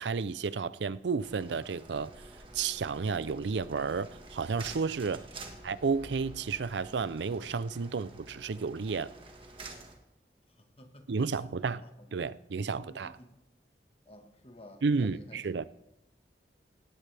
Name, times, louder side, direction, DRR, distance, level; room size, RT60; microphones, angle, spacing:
voice 1, 0.0-2.1 2.5-5.2 5.6-9.1 11.1-11.8 12.1-13.2 14.8-15.7, right 5 dB, 80° right, 0.5 m, -32 dB
sound 1, 1.2-9.9, right 3 dB, 30° right, 1.6 m, -50 dB
sound 2, 2.0-7.0, equal, 75° left, 3.6 m, -55 dB
voice 2, 10.6-11.3 11.6-11.7 12.0-12.1 12.7-13.3 14.1-15.4, equal, 35° left, 1.5 m, -52 dB
18.5 x 17.5 x 3.4 m
head